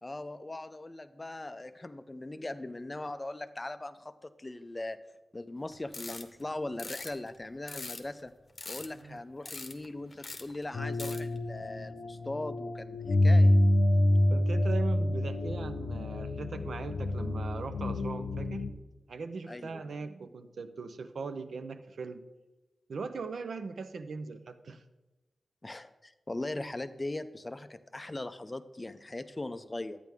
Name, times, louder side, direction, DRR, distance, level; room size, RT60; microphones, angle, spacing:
voice 1, 0.0-5.0 5.3-8.3 8.7-13.6 19.5-19.9 25.6-30.0, left 2 dB, 20° left, 11 dB, 0.4 m, -40 dB
sound 1, 5.7-6.4 6.8-8.2 8.6-9.2 9.5-9.9 10.1-10.7 11.0-11.4, left 3 dB, 35° left, 0.8 m, -42 dB
sound 2, 10.7-18.7, left 1 dB, 80° left, 0.7 m, -27 dB
voice 2, 14.3-18.6 19.1-22.2 22.9-24.8, right 4 dB, 70° right, 9 dB, 0.6 m, -40 dB
12.0 x 9.0 x 3.5 m, 1.1 s
wide cardioid pair, 165°, 0 cm